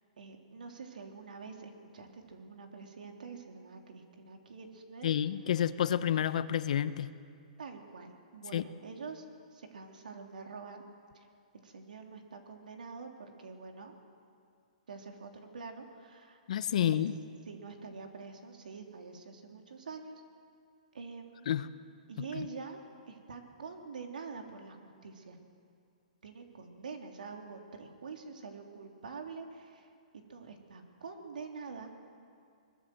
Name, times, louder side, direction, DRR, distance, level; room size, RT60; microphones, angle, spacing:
voice 1, 0.2-5.1 7.6-9.2 9.5-10.8 11.1-11.3 11.5-13.9 14.9-16.4 16.8-17.0 17.5-20.2 20.9-21.5 22.1-22.8 23.1-25.5 26.2-29.9 30.1-31.9, right 4 dB, 85° right, 3 dB, 3.4 m, -46 dB
voice 2, 5.0-7.1 8.5-8.6 16.5-17.1 21.5-21.7 22.4-22.5, left 10 dB, 60° left, 14 dB, 0.9 m, -29 dB
21.5 x 21.0 x 7.8 m, 2.3 s
hypercardioid pair, 155°, 4 cm